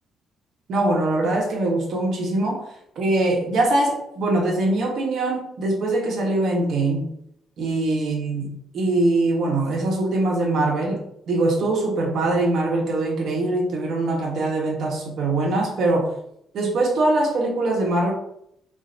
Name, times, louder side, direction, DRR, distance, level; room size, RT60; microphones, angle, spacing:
voice 1, 0.7-2.7 3.0-7.1 7.6-11.0 11.3-16.1 16.5-18.1, right 2 dB, 60° right, 0 dB, 1.1 m, -22 dB
3.8 x 2.5 x 3.9 m, 0.74 s
cardioid pair, 110°, 0 cm